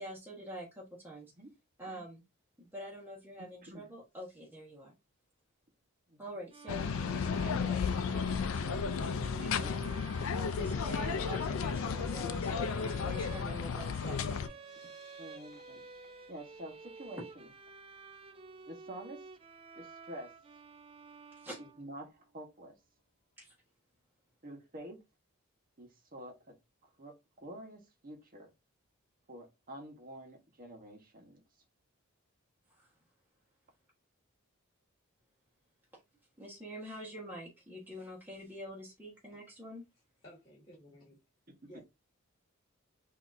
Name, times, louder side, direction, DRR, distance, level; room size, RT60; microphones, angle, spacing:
voice 1, 0.0-1.3 1.8-2.2 2.6-4.9 6.2-9.7 10.3-14.4 21.4-21.6 23.4-23.5 32.7-32.9 36.4-39.8, right 1 dB, 10° right, 1.3 m, -46 dB
sound 1, 6.5-22.2, right 4 dB, 25° right, 0.3 m, -50 dB
sound 2, 6.7-14.5, left 6 dB, 70° left, 0.4 m, -33 dB
voice 2, 9.4-9.7 10.5-10.7 15.2-15.8 16.3-17.5 18.7-19.3 19.8-20.3 21.6-22.8 24.4-25.0 25.8-26.5 26.8-28.5 29.3-31.4, right 1 dB, 40° right, 1.2 m, -48 dB
sound 3, 13.9-21.1 21.5-21.7 22.0-22.1, left 1 dB, 50° left, 2.5 m, -64 dB
voice 3, 40.2-41.2 41.7-41.8, equal, 25° left, 2.2 m, -55 dB
6.1 x 2.8 x 2.6 m
head